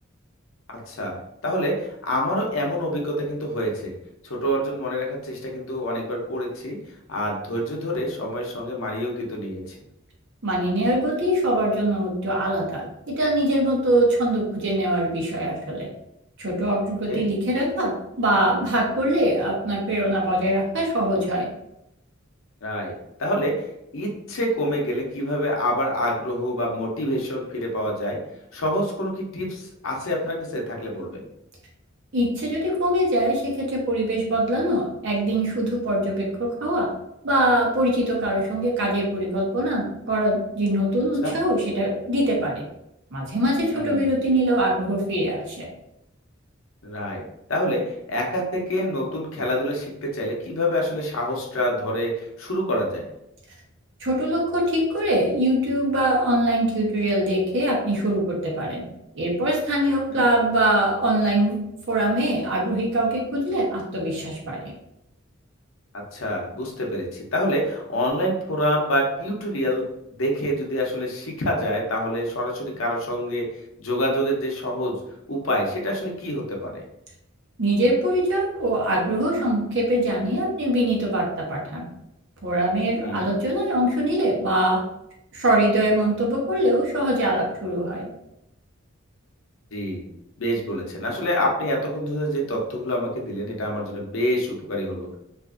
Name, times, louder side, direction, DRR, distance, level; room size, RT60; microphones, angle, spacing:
voice 1, 0.9-3.9 4.2-6.8 7.1-9.8 17.1-17.3 22.6-22.9 23.2-23.6 23.9-28.2 28.5-31.3 41.2-41.4 43.7-44.1 46.8-47.2 47.5-47.8 48.1-53.1 60.1-60.3 66.1-67.1 67.3-73.5 73.8-75.0 75.3-76.8 83.0-83.3 89.7-90.1 90.4-95.2, equal, 65° left, 0 dB, 0.6 m, -26 dB
voice 2, 10.4-15.9 16.4-17.9 18.2-21.5 32.1-36.9 37.2-42.6 43.1-45.7 54.0-58.8 59.1-61.6 61.9-64.7 77.6-81.8 82.4-84.8 85.3-88.1, right 1 dB, 60° right, -2 dB, 0.8 m, -23 dB
2.5 x 2.4 x 2.4 m, 0.82 s
head